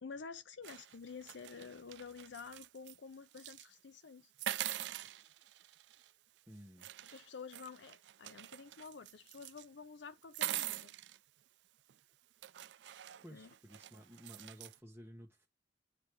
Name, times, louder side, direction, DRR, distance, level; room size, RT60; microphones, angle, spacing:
voice 1, 0.0-4.3 7.1-10.9 13.3-13.5, left 5 dB, 85° left, 0.6 m, -50 dB
sound 1, 0.6-3.0 3.3-3.7 4.4-6.1 6.8-9.6 10.2-11.2 11.9-12.0 12.4-14.8, right 13 dB, 75° right, 0.4 m, -44 dB
voice 2, 6.5-6.9 13.2-15.5, equal, 10° right, 1.1 m, -54 dB
8.8 x 3.5 x 3.1 m
head